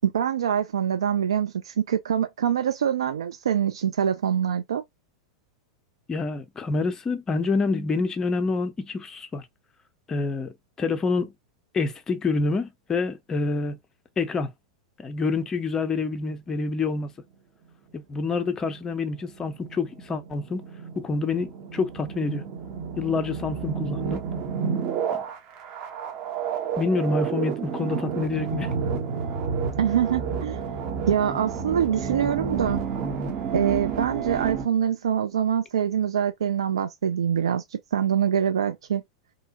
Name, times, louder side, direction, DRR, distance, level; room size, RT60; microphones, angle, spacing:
voice 1, 0.0-4.8 29.8-30.6 31.1-32.8 33.5-39.0, right 9 dB, 70° right, 0.3 m, -24 dB
voice 2, 6.1-9.5 10.1-11.3 11.7-13.8 14.2-14.5 15.0-17.1 17.9-20.6 21.0-22.4 23.0-24.2 25.1-25.2 26.8-28.7, left 4 dB, 20° left, 0.5 m, -27 dB
sound 1, 18.2-34.7, right 6 dB, 40° right, 0.7 m, -31 dB
2.7 x 2.1 x 2.8 m
figure-of-eight pair, 90°, 3 cm